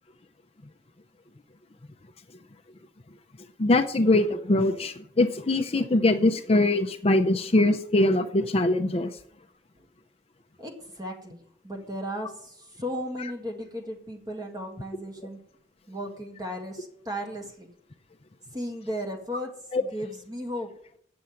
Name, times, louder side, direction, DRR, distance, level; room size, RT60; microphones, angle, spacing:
voice 1, 3.6-9.1 19.7-19.8, left 2 dB, 35° left, 7 dB, 0.6 m, -22 dB
voice 2, 10.6-11.4 11.6-15.4 15.9-17.7 18.5-20.7, equal, 20° right, 2 dB, 1.9 m, -35 dB
8.6 x 7.0 x 7.7 m, 0.65 s
head